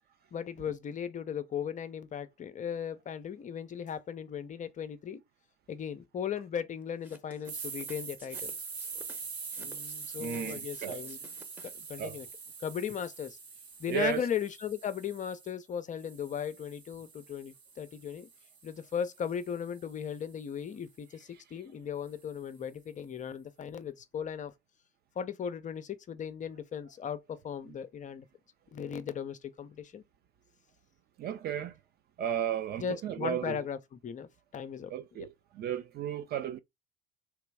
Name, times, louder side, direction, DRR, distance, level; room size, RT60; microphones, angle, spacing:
voice 1, 0.3-5.2 5.7-8.5 9.6-11.2 11.6-12.3 12.6-13.4 13.8-18.3 18.6-24.5 25.2-28.3 28.7-30.0 32.8-33.8 34.0-34.9, left 8 dB, 25° left, 0.5 m, -37 dB
sound 1, 7.0-11.9, equal, 5° right, 0.9 m, -53 dB
sound 2, 7.4-15.5 16.0-20.2, right 5 dB, 85° right, 0.8 m, -44 dB
voice 2, 10.2-11.1 12.0-12.2 13.9-14.3 21.3-21.4 27.7-27.8 31.2-31.8 32.2-33.6 34.9-36.6, right 10 dB, 30° right, 0.5 m, -34 dB
3.4 x 2.9 x 4.7 m
figure-of-eight pair, 70°, 31 cm